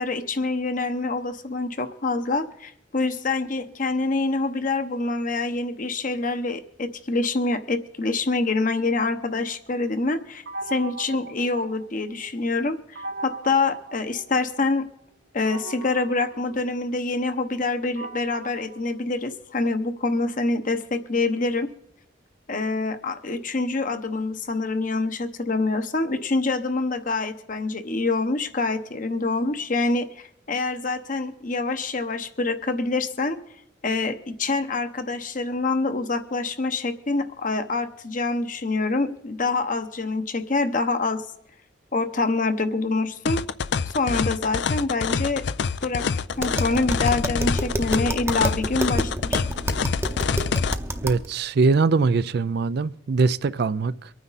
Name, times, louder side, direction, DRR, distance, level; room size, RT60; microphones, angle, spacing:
voice 1, 0.0-14.9 15.3-21.7 22.5-33.4 33.8-41.2 41.9-43.4 43.9-45.4 45.8-46.0 46.4-49.4, left 3 dB, 45° left, 0.9 m, -26 dB
sound 1, 10.5-12.3 13.0-14.8 15.5-19.7, right 2 dB, 85° right, 1.9 m, -40 dB
sound 2, 43.3-50.8, left 5 dB, 65° left, 0.4 m, -26 dB
Tap, 46.3-51.3, right 1 dB, 15° right, 0.8 m, -29 dB
voice 2, 51.0-54.1, right 4 dB, 60° right, 0.4 m, -22 dB
24.0 x 9.4 x 4.1 m
head